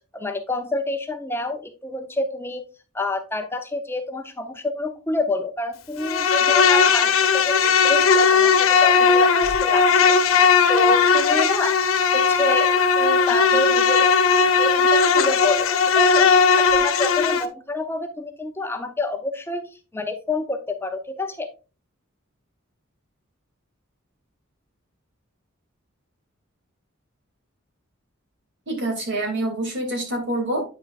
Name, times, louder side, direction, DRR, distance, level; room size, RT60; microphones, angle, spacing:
voice 1, 0.1-2.6 2.9-11.7 12.1-14.1 14.5-14.9 15.1-19.6 19.9-21.5, left 2 dB, 10° left, 6 dB, 0.6 m, -28 dB
Insect, 6.0-17.5, left 5 dB, 85° left, 0.9 m, -17 dB
voice 2, 28.7-30.6, right 1 dB, 60° right, 2 dB, 2.7 m, -26 dB
8.8 x 5.9 x 2.4 m, 0.33 s
head